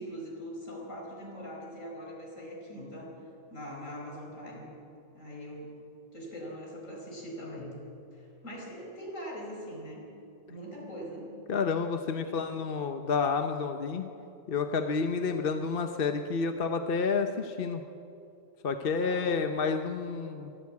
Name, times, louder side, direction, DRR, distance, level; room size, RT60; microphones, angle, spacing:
voice 1, 0.0-3.2 3.5-4.7 5.1-5.8 6.1-7.8 8.1-10.0 10.5-11.3 12.2-12.6 19.0-19.3, equal, 75° left, -1 dB, 5.3 m, -42 dB
voice 2, 11.5-14.1 14.5-17.8 18.6-20.5, left 5 dB, 50° left, 6 dB, 1.0 m, -30 dB
24.0 x 14.5 x 8.5 m, 2.8 s
omnidirectional pair, 1.3 m